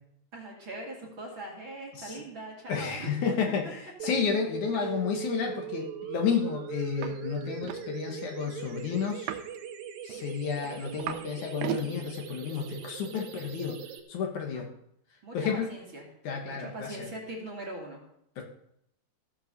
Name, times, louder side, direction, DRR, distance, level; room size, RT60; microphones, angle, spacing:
voice 1, 0.3-3.1 4.7-4.8 14.5-14.6 15.2-16.1 16.5-18.0, right 1 dB, 40° right, -1 dB, 2.6 m, -41 dB
voice 2, 2.7-9.3 10.0-13.8 14.1-14.7 15.3-15.7 16.2-17.0 18.4-18.5, left 6 dB, 65° left, 1 dB, 2.6 m, -31 dB
sound 1, 4.0-14.0, right 8 dB, 65° right, 2.4 m, -40 dB
sound 2, 7.0-7.2 7.4-7.8 9.1-9.6 10.1-11.3 11.5-11.9 12.6-12.7, right 11 dB, 90° right, 2.5 m, -36 dB
15.0 x 5.8 x 6.7 m, 0.74 s
omnidirectional pair, 4.0 m